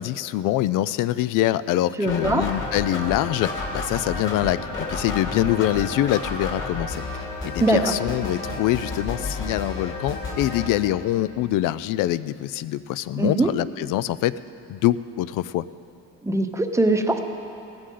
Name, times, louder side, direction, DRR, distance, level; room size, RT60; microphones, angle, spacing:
voice 1, 0.0-7.0 7.4-14.3 14.7-15.6, left 14 dB, 70° left, 17 dB, 0.5 m, -24 dB
sound 1, 2.0-10.7, left 3 dB, 35° left, 2.8 m, -31 dB
voice 2, 2.0-2.5 7.6-7.9 13.2-13.5 16.2-17.2, right 2 dB, 10° right, 5 dB, 0.8 m, -21 dB
17.5 x 15.0 x 3.8 m, 2.7 s
cardioid pair, 120°, 33 cm